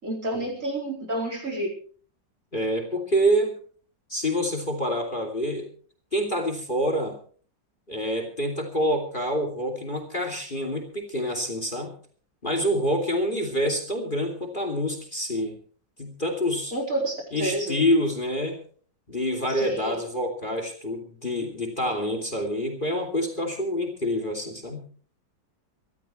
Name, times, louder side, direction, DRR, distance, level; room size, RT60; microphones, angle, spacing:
voice 1, 0.0-1.7 16.7-17.7 19.6-20.0, right 1 dB, 45° right, 0 dB, 4.9 m, -29 dB
voice 2, 2.5-3.5 4.1-5.7 6.1-7.2 7.9-11.9 12.4-15.6 16.0-16.7 17.3-18.6 19.1-24.8, equal, 25° left, 5 dB, 3.0 m, -27 dB
25.5 x 13.5 x 3.2 m, 0.44 s
omnidirectional pair, 2.0 m